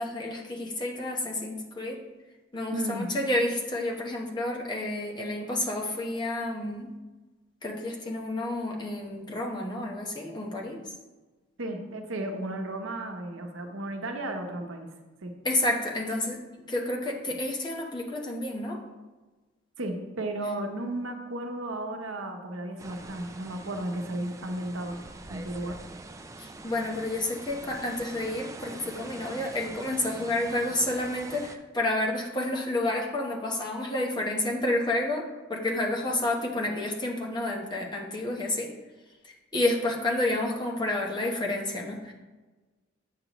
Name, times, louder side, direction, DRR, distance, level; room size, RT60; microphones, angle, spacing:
voice 1, 0.0-2.0 2.5-6.9 7.6-11.0 15.4-16.4 16.7-18.8 26.4-35.2 35.5-38.7 39.2-42.1, left 1 dB, 20° left, -1 dB, 1.0 m, -30 dB
voice 2, 2.7-3.1 11.6-14.9 15.2-15.3 19.8-25.0 25.3-25.8, right 1 dB, 80° right, 4 dB, 0.9 m, -34 dB
sound 1, 22.8-31.6, right 2 dB, 15° right, 0.3 m, -44 dB
8.0 x 6.6 x 3.0 m, 1.2 s
head